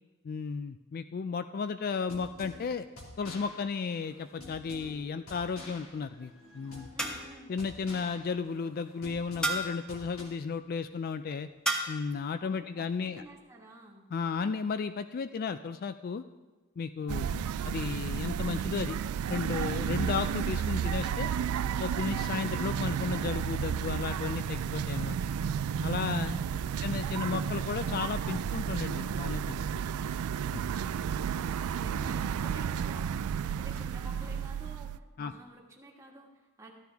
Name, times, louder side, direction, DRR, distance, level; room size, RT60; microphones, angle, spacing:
voice 1, 0.2-2.9 3.2-6.9 7.5-11.5 11.9-13.2 14.1-16.2 16.8-19.0 19.3-21.3 21.8-25.2 25.8-26.4 26.8-29.6 30.5-30.6 35.2-35.3, left 5 dB, 45° left, 11 dB, 0.3 m, -34 dB
sound 1, 1.9-10.2, left 2 dB, 70° left, 2.5 m, -49 dB
sound 2, 4.8-5.3 7.0-7.5 9.4-9.9 11.7-12.1, right 2 dB, 5° left, 1.1 m, -33 dB
voice 2, 6.9-7.6 12.4-14.1 25.9-26.2 31.0-36.7, right 1 dB, 15° right, -1 dB, 1.6 m, -51 dB
sound 3, 17.1-35.0, right 8 dB, 80° right, 0.3 m, -32 dB
14.5 x 11.5 x 3.5 m, 1.2 s
head